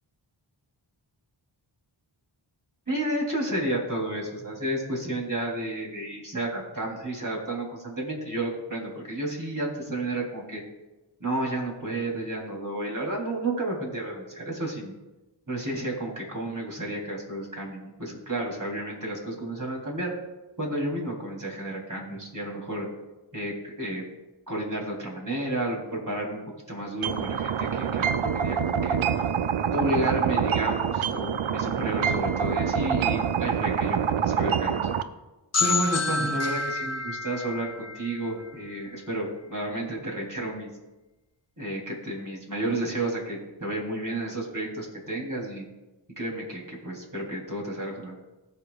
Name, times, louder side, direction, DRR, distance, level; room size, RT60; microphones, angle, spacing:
voice 1, 2.9-10.6 11.2-14.9 15.5-20.1 20.6-22.9 23.3-24.0 24.5-26.4 26.7-29.0 29.7-34.9 35.6-40.7 41.6-45.7 46.2-48.1, right 1 dB, 40° right, -2 dB, 3.1 m, -31 dB
sound 1, 27.0-35.0, right 7 dB, 75° right, 0.6 m, -26 dB
sound 2, 35.5-39.2, left 3 dB, 35° left, 0.5 m, -29 dB
19.5 x 6.6 x 2.3 m, 1.1 s
wide cardioid pair, 50°, 48 cm